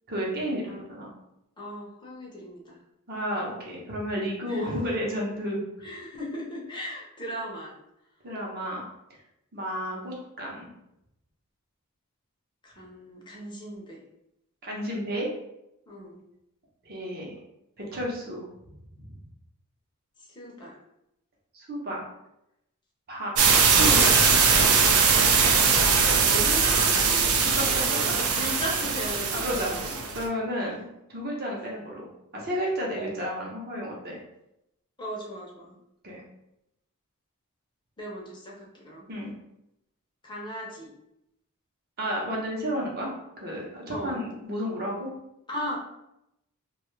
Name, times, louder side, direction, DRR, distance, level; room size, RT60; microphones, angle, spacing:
voice 1, 0.1-1.1 3.1-5.6 8.2-8.8 9.1-9.2 9.5-10.7 14.6-15.3 16.8-17.4 17.8-18.4 19.0-19.2 21.5-22.0 23.1-24.2 26.2-26.4 27.6-27.7 29.3-32.1 32.3-34.2 36.0-36.2 39.1-39.3 42.0-45.1, equal, 45° right, -3 dB, 0.7 m, -32 dB
voice 2, 1.6-2.8 4.4-4.9 5.8-7.7 12.6-14.0 15.9-16.2 20.2-20.8 25.1-29.9 30.6-30.7 32.9-33.1 35.0-35.8 38.0-39.1 40.2-40.9 43.9-44.2 45.5-45.8, equal, 20° left, -3 dB, 0.6 m, -38 dB
sound 1, 23.4-30.2, right 5 dB, 70° right, 0.4 m, -21 dB
2.5 x 2.3 x 3.1 m, 0.84 s
head